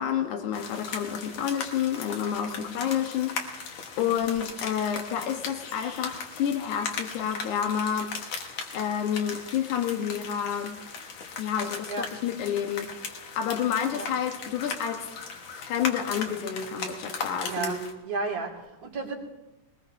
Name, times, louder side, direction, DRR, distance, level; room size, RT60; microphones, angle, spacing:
voice 1, 0.0-8.4 8.7-10.8 11.4-15.1 15.5-17.8, left 8 dB, 85° left, 5 dB, 2.6 m, -29 dB
sound 1, 0.5-17.9, left 5 dB, 60° left, 2.4 m, -38 dB
voice 2, 17.5-17.8 18.0-19.2, right 4 dB, 60° right, -1 dB, 3.3 m, -33 dB
21.5 x 20.0 x 2.7 m, 1.0 s
omnidirectional pair, 3.5 m